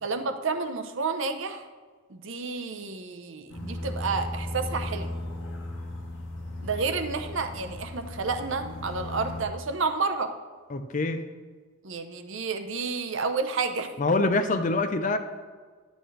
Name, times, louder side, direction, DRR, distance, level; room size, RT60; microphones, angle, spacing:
voice 1, 0.0-1.7 2.1-5.1 6.6-10.3 11.8-13.9, right 4 dB, 60° right, 7 dB, 0.7 m, -30 dB
sound 1, 3.5-9.4, left 1 dB, 55° left, 1.5 m, -36 dB
voice 2, 10.7-11.2 14.0-15.2, left 2 dB, 35° left, 8 dB, 0.5 m, -25 dB
11.5 x 8.0 x 3.2 m, 1.5 s
head